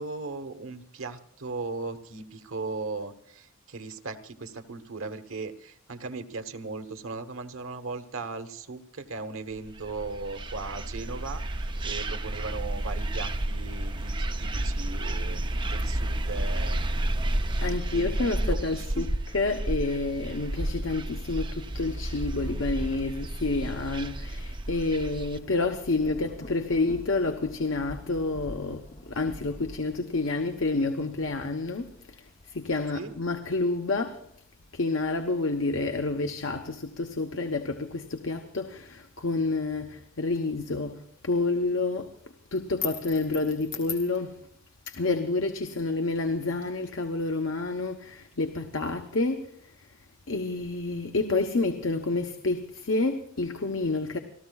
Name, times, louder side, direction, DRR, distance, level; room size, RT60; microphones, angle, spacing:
voice 1, 0.0-17.0 17.9-19.1 32.9-33.1, right 3 dB, 85° right, 8 dB, 1.2 m, -38 dB
sound 1, 9.7-25.4, right 1 dB, 25° right, 0.6 m, -31 dB
voice 2, 17.6-19.1 19.3-34.2 34.7-42.1 42.5-44.4 44.9-49.5 50.3-54.2, left 3 dB, 75° left, 5 dB, 1.0 m, -29 dB
Thunder / Rain, 24.9-33.6 34.2-35.5, left 1 dB, 30° left, 0.9 m, -47 dB
30.0 x 14.5 x 2.4 m, 0.69 s
head